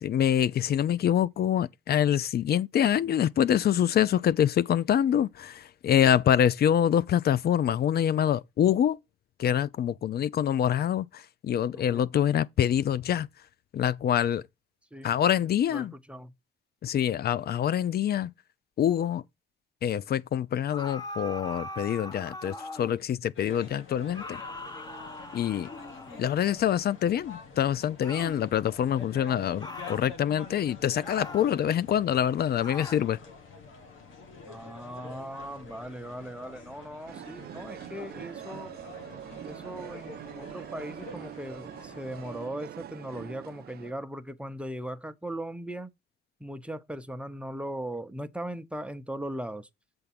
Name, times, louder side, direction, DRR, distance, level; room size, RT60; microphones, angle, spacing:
voice 1, 0.0-9.0 9.4-13.3 13.7-14.4 15.0-15.9 16.8-18.3 18.8-19.2 19.8-24.4 25.3-25.7 26.2-33.2, left 10 dB, 50° left, 0.5 m, -25 dB
voice 2, 11.7-12.1 14.9-15.1 15.7-16.3 34.5-38.8 39.4-45.9 46.4-49.7, right 1 dB, 5° right, 0.7 m, -39 dB
sound 1, 20.7-23.0 24.1-26.4 28.0-28.4 29.6-30.1 31.0-31.6 32.6-33.1, left 1 dB, 20° left, 1.3 m, -41 dB
sound 2, 23.3-42.5, left 4 dB, 85° left, 1.7 m, -47 dB
sound 3, 37.1-43.9, right 12 dB, 55° right, 0.4 m, -43 dB
7.9 x 3.6 x 5.9 m
cardioid pair, 90°, 20 cm